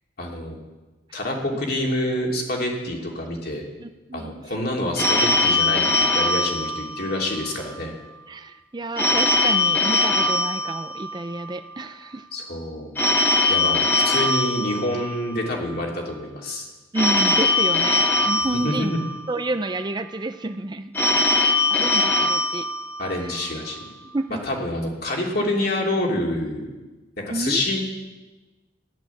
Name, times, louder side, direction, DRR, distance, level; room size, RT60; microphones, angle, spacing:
voice 1, 0.2-0.6 1.1-3.6 4.1-7.9 12.3-12.9 13.5-16.7 18.5-19.0 23.0-23.8 24.5-26.7 27.3-27.8, left 1 dB, 55° left, -1 dB, 2.8 m, -27 dB
voice 2, 3.8-4.4 8.3-12.3 16.9-18.9 19.3-20.9 21.4-22.7 23.2-23.3 24.1-24.4 27.3-27.6, right 2 dB, 25° right, 10 dB, 0.5 m, -30 dB
Telephone, 5.0-7.5 9.0-11.4 13.0-15.4 16.9-19.4 20.9-23.4, left 2 dB, 10° left, 1.1 m, -21 dB
14.0 x 11.0 x 7.2 m, 1.2 s
head